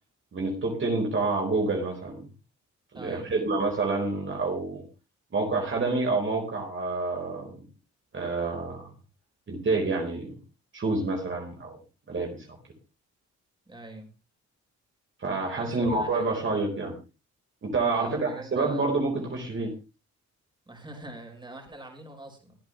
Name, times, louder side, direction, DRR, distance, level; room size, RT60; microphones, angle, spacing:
voice 1, 0.3-2.3 2.9-4.8 5.3-7.7 8.1-8.9 9.5-10.3 10.7-11.8 12.1-12.4 15.2-16.9 17.6-19.7, right 3 dB, 40° right, 1 dB, 4.5 m, -28 dB
voice 2, 2.9-3.5 13.7-14.1 15.6-16.4 17.9-18.9 20.7-22.6, right 1 dB, 15° right, 2 dB, 5.3 m, -43 dB
24.5 x 8.8 x 3.3 m, 0.30 s
cardioid pair, 105°, 30 cm